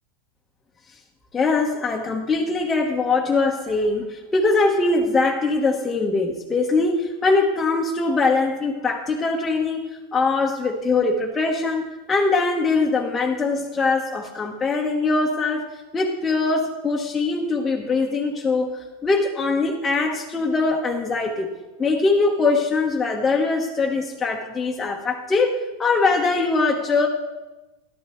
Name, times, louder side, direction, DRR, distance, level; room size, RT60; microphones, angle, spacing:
voice 1, 1.3-9.9 10.1-15.7 15.9-21.5 21.8-27.1, left 3 dB, 15° left, -1 dB, 1.2 m, -22 dB
13.5 x 12.0 x 3.1 m, 1.1 s
hypercardioid pair, 115°, 0 cm